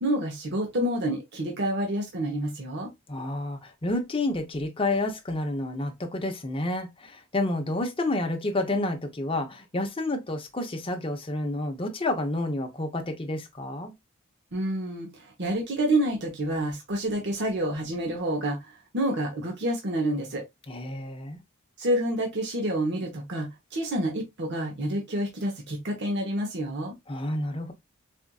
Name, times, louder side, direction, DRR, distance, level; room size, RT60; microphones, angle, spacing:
voice 1, 0.0-2.9 14.5-15.1 15.4-18.6 18.9-20.4 21.8-26.9, right 1 dB, 55° right, 0.9 m, -28 dB
voice 2, 3.1-13.9 20.7-21.4 27.1-27.7, left 2 dB, 25° left, 0.7 m, -29 dB
4.3 x 2.5 x 2.3 m
head